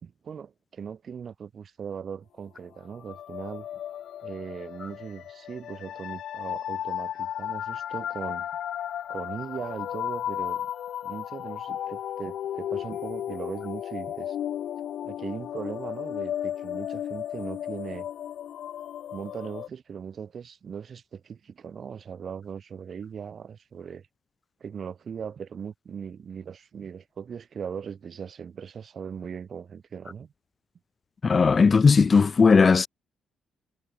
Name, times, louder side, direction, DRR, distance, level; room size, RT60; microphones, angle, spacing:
voice 1, 0.0-3.7 4.2-8.5 9.1-10.7 11.0-14.4 15.0-18.1 19.1-24.1 24.6-30.3, right 7 dB, 50° right, 4.2 m, -39 dB
sound 1, 2.9-19.7, left 10 dB, 70° left, 7.3 m, -34 dB
voice 2, 31.2-32.9, left 5 dB, 35° left, 0.9 m, -17 dB
cardioid pair, 90°, 0 cm